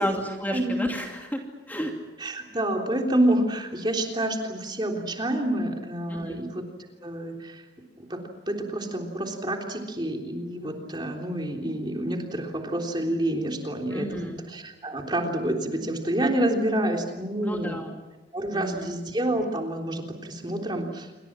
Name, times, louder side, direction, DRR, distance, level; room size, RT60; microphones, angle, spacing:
voice 1, 0.0-1.4 1.7-1.9 6.1-6.4 13.9-14.4 17.4-17.9 18.5-18.9, equal, 10° left, 1 dB, 2.6 m, -31 dB
voice 2, 2.2-6.6 7.0-7.6 8.0-8.2 8.5-17.8 18.3-21.2, right 1 dB, 25° right, 2 dB, 3.5 m, -28 dB
28.0 x 24.5 x 7.5 m, 1.1 s
head